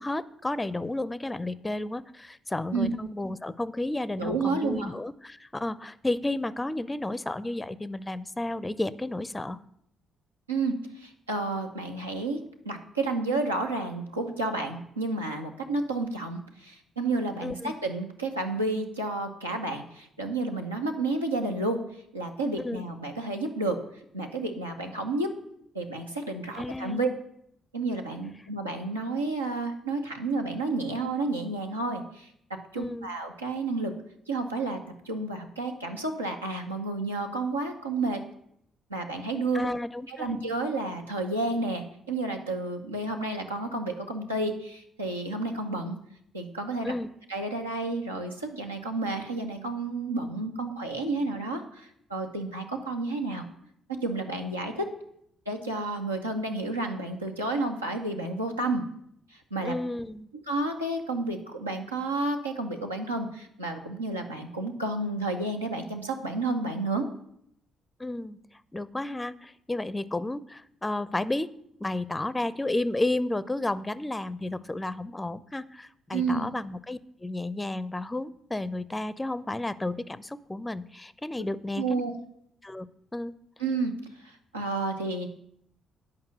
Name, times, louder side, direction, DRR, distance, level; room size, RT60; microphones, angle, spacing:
voice 1, 0.0-9.6 17.4-17.7 22.6-22.9 26.5-27.1 32.8-33.1 39.5-40.3 46.8-47.1 59.6-60.3 68.0-68.4 68.7-71.5 71.8-82.0 82.6-83.4, left 2 dB, 15° left, 17 dB, 0.5 m, -32 dB
voice 2, 4.2-4.9 10.5-21.8 22.1-23.8 24.1-25.3 25.7-27.1 27.7-32.3 32.7-33.9 34.3-34.8 35.0-38.2 38.9-39.7 40.1-46.0 46.3-46.9 47.3-53.4 54.0-54.9 55.5-58.8 59.3-59.7 60.5-67.1 76.1-76.5 81.8-82.1 83.6-85.3, right 2 dB, 85° right, 2 dB, 0.9 m, -31 dB
8.9 x 5.4 x 7.8 m, 0.72 s
figure-of-eight pair, 40°, 0 cm